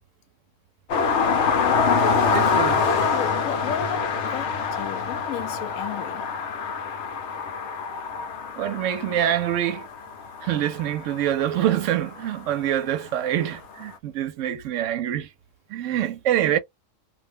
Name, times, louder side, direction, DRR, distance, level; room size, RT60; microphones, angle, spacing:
sound 1, 0.9-12.3 13.8-13.9, left 5 dB, 65° left, 0.9 m, -25 dB
voice 1, 2.3-3.0 8.6-9.9 10.4-15.3 15.7-16.6, right 11 dB, 75° right, 0.9 m, -25 dB
voice 2, 3.1-6.3, left 9 dB, 90° left, 1.0 m, -34 dB
2.4 x 2.1 x 3.3 m
omnidirectional pair, 1.4 m